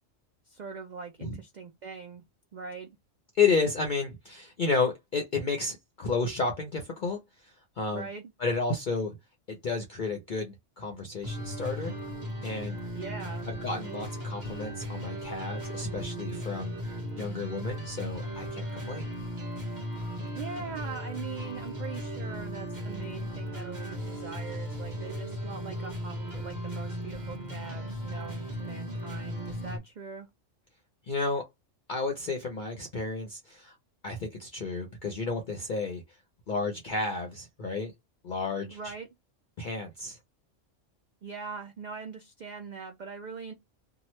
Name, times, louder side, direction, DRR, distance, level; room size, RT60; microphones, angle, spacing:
voice 1, 0.5-2.2 2.5-3.0 7.9-8.3 12.9-13.5 20.3-30.3 38.7-39.1 41.2-43.5, right 5 dB, 65° right, 0.4 m, -41 dB
voice 2, 3.4-7.2 7.4-8.1 8.4-9.1 9.5-11.9 12.4-12.8 13.5-16.8 17.2-19.1 31.1-31.4 31.9-33.7 34.0-36.0 36.5-37.9 38.2-38.9 39.6-40.2, left 4 dB, 50° left, 0.6 m, -31 dB
sound 1, 11.2-29.8, equal, 40° right, 1.2 m, -36 dB
2.9 x 2.3 x 3.0 m
omnidirectional pair, 1.3 m